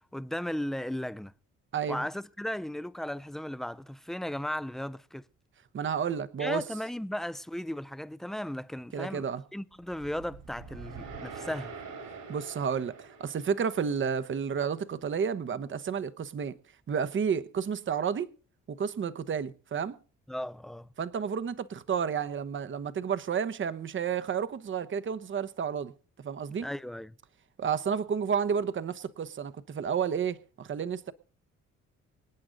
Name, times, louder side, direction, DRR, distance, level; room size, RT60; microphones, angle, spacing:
voice 1, 0.1-1.3 1.9-5.3 6.4-11.7 20.3-20.9 26.6-27.1, left 1 dB, ahead, 0.6 m, -36 dB
voice 2, 1.7-2.0 5.7-6.6 8.9-9.4 12.3-16.6 16.9-18.3 18.7-20.0 21.0-25.9 26.2-26.7 27.6-31.1, right 7 dB, 40° right, 1.0 m, -31 dB
sound 1, 9.9-14.2, right 4 dB, 90° right, 6.2 m, -45 dB
26.0 x 8.7 x 3.9 m
cardioid pair, 90°, 30 cm